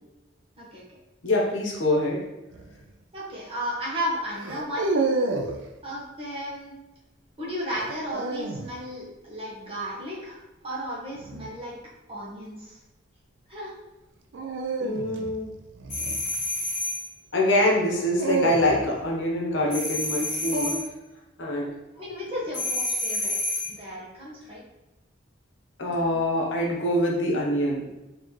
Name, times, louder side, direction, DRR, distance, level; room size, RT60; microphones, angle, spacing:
voice 1, 1.2-2.2 14.8-15.5 17.3-20.7 21.4-21.7 25.8-27.8, left 1 dB, 70° left, -2 dB, 0.9 m, -24 dB
sound 1, 2.5-2.8 4.4-5.6 7.7-8.7 11.2-11.5 14.3-16.7 17.8-19.1, right 3 dB, 70° right, 0.4 m, -30 dB
voice 2, 3.1-4.8 5.8-6.7 7.4-11.7 12.1-12.7 13.5-13.7 20.4-20.7 22.0-23.3 23.7-24.6 25.8-26.3, equal, 30° right, -6 dB, 1.1 m, -34 dB
sound 2, 15.9-17.1 19.7-20.9 22.5-23.8, left 1 dB, 40° left, 1.1 m, -29 dB
4.1 x 2.9 x 3.0 m, 1.0 s
head